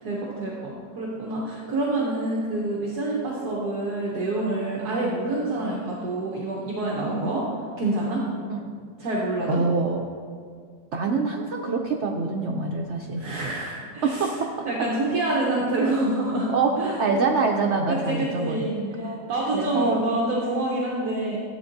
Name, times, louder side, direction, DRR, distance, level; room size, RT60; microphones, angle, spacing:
voice 1, 0.0-7.4 7.8-8.2 9.0-9.6 13.2-16.5 16.7-17.0 17.9-21.4, right 2 dB, 65° right, -4 dB, 1.5 m, -27 dB
voice 2, 8.5-8.8 9.5-10.0 10.9-13.3 14.0-14.5 16.5-19.2 19.5-20.0, right 3 dB, 90° right, 2 dB, 0.6 m, -26 dB
13.0 x 7.8 x 2.6 m, 2.1 s
omnidirectional pair, 1.9 m